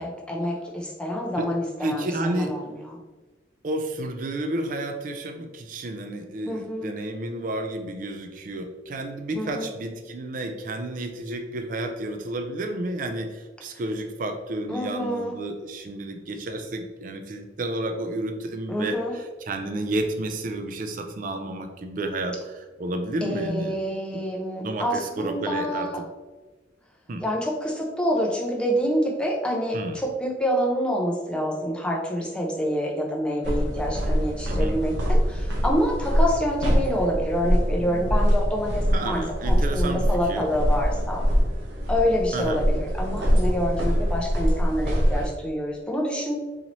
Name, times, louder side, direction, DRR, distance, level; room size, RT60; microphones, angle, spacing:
voice 1, 0.0-2.6 6.5-6.9 9.4-9.7 14.7-15.3 18.7-19.1 23.2-26.0 27.2-41.2 41.9-46.4, equal, 5° left, -2 dB, 0.6 m, -27 dB
voice 2, 1.8-2.5 3.6-23.7 24.6-26.1 27.1-27.2 29.7-30.0 34.5-34.8 38.9-40.5 42.3-42.6, right 1 dB, 45° right, 6 dB, 0.4 m, -31 dB
sound 1, 33.4-45.3, equal, 75° right, 0.8 m, -24 dB
3.9 x 2.8 x 3.0 m, 1.2 s
head